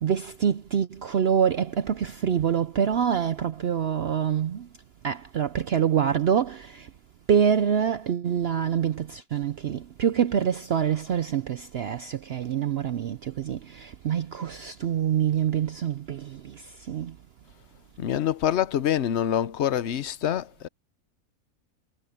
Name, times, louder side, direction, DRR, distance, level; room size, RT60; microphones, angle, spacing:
voice 1, 0.0-4.7 5.0-6.9 7.3-17.1, right 8 dB, 65° right, 0.6 m, -26 dB
voice 2, 18.0-20.7, left 10 dB, 55° left, 0.9 m, -26 dB
omnidirectional pair, 1.6 m